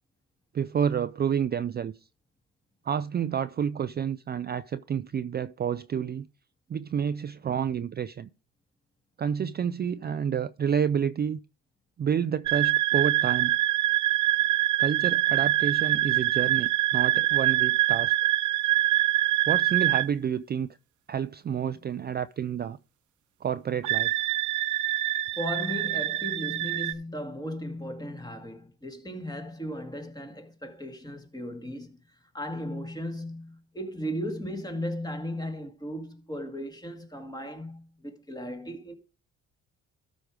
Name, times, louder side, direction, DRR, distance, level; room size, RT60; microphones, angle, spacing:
voice 1, 0.5-1.9 2.8-6.3 6.7-8.3 9.2-11.4 12.0-13.6 14.8-18.1 19.5-20.7 21.1-22.8 23.4-24.2, right 8 dB, 35° right, 0.4 m, -29 dB
sound 1, 12.5-20.1 23.8-26.9, right 16 dB, 75° right, 0.7 m, -24 dB
voice 2, 25.4-32.0 32.3-38.9, equal, 15° left, 2.2 m, -36 dB
13.0 x 5.2 x 4.8 m
cardioid pair, 90°, 30 cm